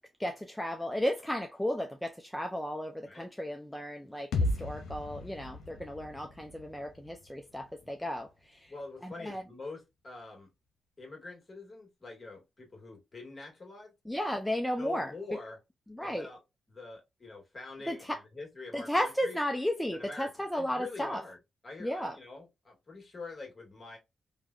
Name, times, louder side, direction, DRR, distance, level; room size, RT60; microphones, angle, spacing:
voice 1, 0.2-8.7 9.0-9.4 14.1-15.1 15.9-16.3 17.9-18.2 18.7-21.2 21.8-22.2, equal, 5° left, 0.5 m, -34 dB
sound 1, 4.3-8.2, left 2 dB, 85° left, 0.6 m, -36 dB
voice 2, 8.7-10.5 11.0-13.9 14.8-15.6 16.0-16.4 16.7-19.4 19.9-21.4 21.6-24.0, left 3 dB, 40° left, 1.6 m, -45 dB
3.2 x 2.2 x 2.4 m
supercardioid pair, 50°, 0 cm